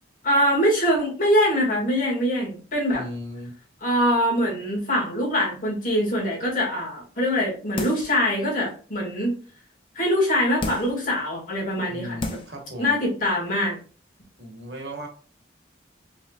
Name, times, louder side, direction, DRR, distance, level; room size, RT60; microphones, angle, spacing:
voice 1, 0.2-3.1 3.8-9.3 10.0-12.2 12.8-13.8, equal, 45° left, -3 dB, 2.0 m, -23 dB
voice 2, 2.9-3.6 11.9-13.0 14.4-15.1, equal, 60° right, 2 dB, 1.3 m, -36 dB
sound 1, 7.8-8.2 8.7-8.8 10.6-11.0 11.7-11.8 12.2-12.6 13.0-13.1, left 2 dB, 25° left, 0.6 m, -31 dB
5.4 x 3.3 x 2.4 m, 0.39 s
head